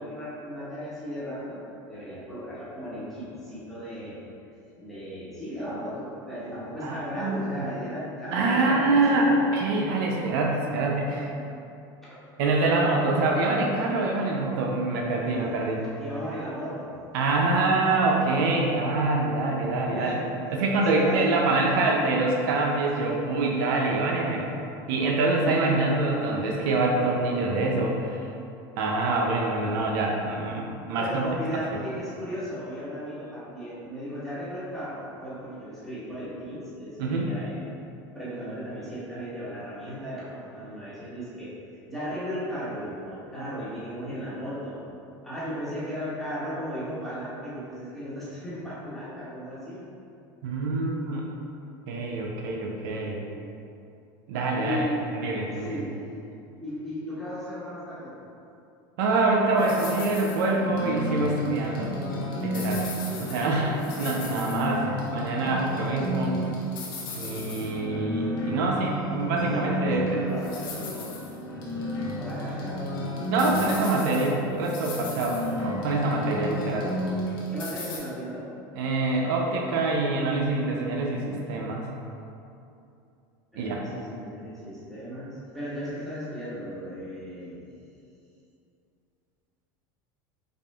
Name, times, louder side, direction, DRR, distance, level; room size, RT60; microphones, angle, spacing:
voice 1, 0.0-4.2 4.8-9.0 9.2-9.5 15.2-15.6 16.0-17.0 19.9-20.3 20.8-21.2 31.0-37.6 38.1-41.6 41.9-44.8 45.2-49.9 54.6-55.0 55.5-56.0 56.6-58.1 69.4-71.2 72.0-72.8 77.5-78.5 83.5-87.7, equal, ahead, -11 dB, 1.4 m, -36 dB
voice 2, 6.8-7.7 8.3-11.3 12.4-15.8 17.1-20.2 20.5-24.5 24.9-28.2 28.8-31.2 37.0-37.3 50.4-51.3 51.9-53.2 54.3-54.9 55.1-55.8 59.0-61.9 62.4-62.8 63.2-64.9 65.1-66.4 67.2-70.2 73.3-76.9 78.8-81.8 83.6-83.8, right 2 dB, 70° right, -1 dB, 0.5 m, -25 dB
sound 1, 59.6-78.0, equal, 75° left, 0.8 m, -32 dB
5.0 x 2.5 x 2.3 m, 2.6 s
supercardioid pair, 110°, 11 cm